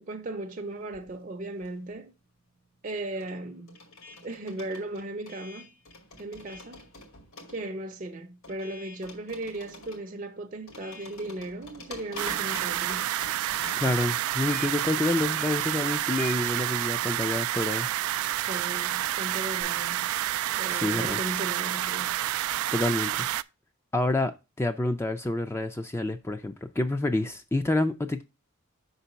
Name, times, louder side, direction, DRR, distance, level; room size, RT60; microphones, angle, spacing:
voice 1, 0.0-2.1 2.8-3.8 4.2-5.7 6.2-6.8 7.5-13.1 18.5-20.1 20.6-22.2, right 2 dB, 40° right, 0.6 m, -37 dB
sound 1, 0.8-2.1 2.3-19.6, left 3 dB, 75° left, 2.2 m, -47 dB
sound 2, 12.2-23.4, right 13 dB, 90° right, 0.3 m, -29 dB
voice 2, 13.8-17.9 20.7-21.2 22.7-23.1 23.9-24.3 24.6-28.3, left 2 dB, 10° left, 0.4 m, -28 dB
5.9 x 4.0 x 5.5 m
head